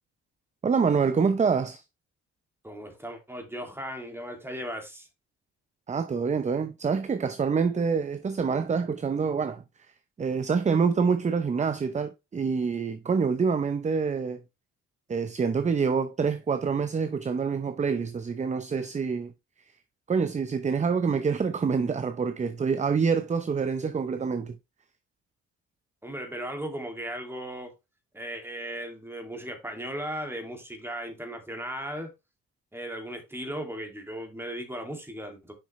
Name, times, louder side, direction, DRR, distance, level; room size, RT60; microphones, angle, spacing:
voice 1, 0.6-1.8 5.9-9.6 10.2-14.4 15.1-19.3 20.1-24.6, right 5 dB, 25° right, 0.6 m, -26 dB
voice 2, 2.6-5.1 26.0-27.7 28.1-32.1 32.7-35.5, equal, 10° right, 2.3 m, -37 dB
6.5 x 5.4 x 3.1 m
cardioid pair, 90°, 30 cm